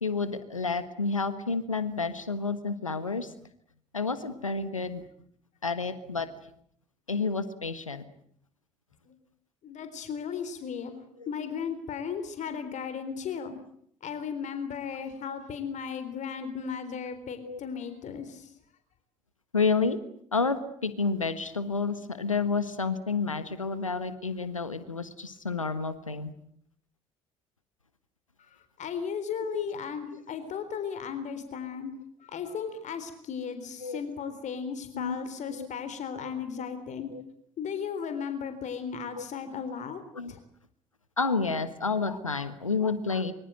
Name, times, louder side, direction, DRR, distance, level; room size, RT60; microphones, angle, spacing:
voice 1, 0.0-3.3 3.9-5.0 5.6-6.3 7.1-8.0 11.2-11.3 17.4-17.6 19.5-20.0 20.3-26.3 29.5-29.6 33.8-34.0 34.9-35.2 35.5-35.7 36.2-36.3 37.1-37.2 39.1-39.2 40.1-40.3 41.2-43.3, left 4 dB, 90° left, 13 dB, 1.4 m, -30 dB
voice 2, 9.6-10.9 11.3-13.5 14.0-18.5 28.8-31.9 32.2-37.1 37.6-40.0 40.3-40.4, left 7 dB, 45° left, 10 dB, 3.8 m, -35 dB
25.0 x 25.0 x 7.8 m, 0.66 s
figure-of-eight pair, 55°, 16 cm